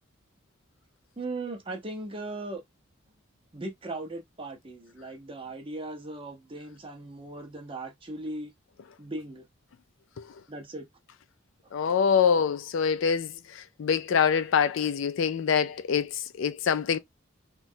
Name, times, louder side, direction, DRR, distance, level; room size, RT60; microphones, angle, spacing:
voice 1, 1.2-2.6 3.5-8.5 9.0-9.4 10.5-10.9, right 2 dB, 25° right, 0.6 m, -38 dB
voice 2, 11.7-13.3 13.8-17.0, left 7 dB, 65° left, 0.4 m, -25 dB
3.1 x 2.3 x 2.6 m
head